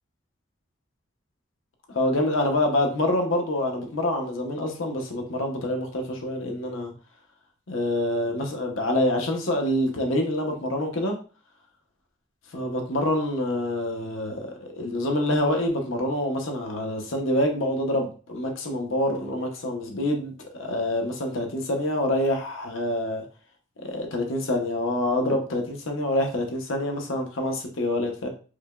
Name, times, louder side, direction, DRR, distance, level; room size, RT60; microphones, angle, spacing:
voice 1, 1.9-6.9 7.7-11.2 12.5-23.2 23.8-28.3, left 1 dB, 80° left, 2 dB, 0.8 m, -26 dB
4.8 x 2.1 x 2.3 m, 0.37 s
head